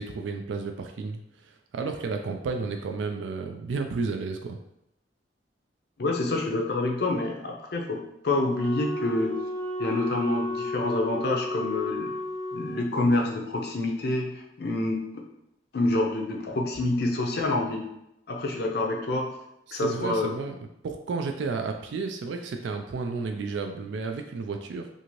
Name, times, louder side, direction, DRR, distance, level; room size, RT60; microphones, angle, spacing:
voice 1, 0.0-4.6 19.7-20.6 20.8-24.9, right 4 dB, 80° right, 5 dB, 0.3 m, -32 dB
voice 2, 6.0-9.4 9.8-12.1 12.5-15.2 15.7-17.9 18.3-19.3 19.7-20.4, left 2 dB, 60° left, 1 dB, 0.6 m, -27 dB
Wind instrument woodwind instrument, 8.5-12.8, left 1 dB, 15° left, 0.5 m, -33 dB
2.6 x 2.5 x 3.0 m, 0.81 s
head